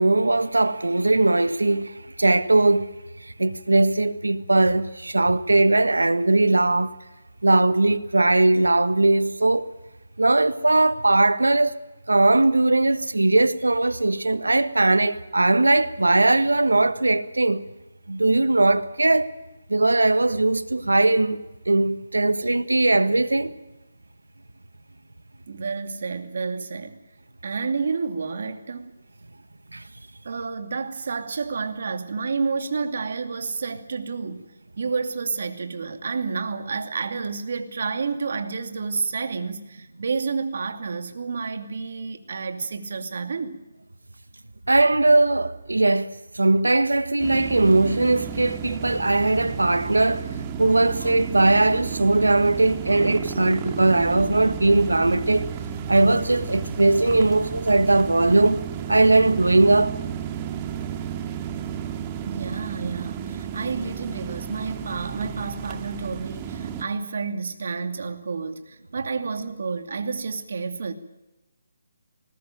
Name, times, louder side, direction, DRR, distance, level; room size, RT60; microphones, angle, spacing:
voice 1, 0.0-2.9 3.4-6.9 7.4-9.7 10.2-11.7 12.1-17.7 18.1-19.3 19.7-23.5 29.7-29.8 44.7-50.3 50.6-55.5 55.9-58.6 58.9-59.9, right 2 dB, 90° right, 1.5 m, -19 dB
voice 2, 25.5-27.0 27.4-28.9 30.2-34.4 34.8-43.6 48.7-48.8 62.2-70.9, right 4 dB, 60° right, 2.5 m, -30 dB
sound 1, 47.2-66.8, right 8 dB, 25° right, 1.9 m, -33 dB
20.5 x 19.5 x 9.0 m
figure-of-eight pair, 150°, 0 cm